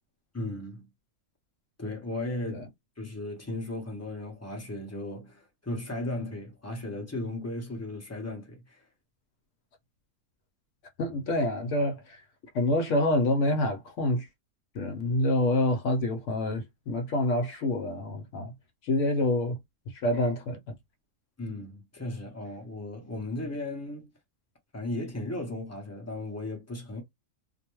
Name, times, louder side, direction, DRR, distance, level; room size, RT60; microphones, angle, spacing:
voice 1, 0.3-0.9 1.8-2.7 3.0-8.8 21.4-24.1 24.7-27.0, left 2 dB, 25° left, 0.3 m, -36 dB
voice 2, 11.0-12.2 12.5-14.3 14.7-18.5 18.8-19.6 20.0-20.7, left 1 dB, 65° left, 0.9 m, -27 dB
2.5 x 2.2 x 2.9 m
omnidirectional pair, 1.5 m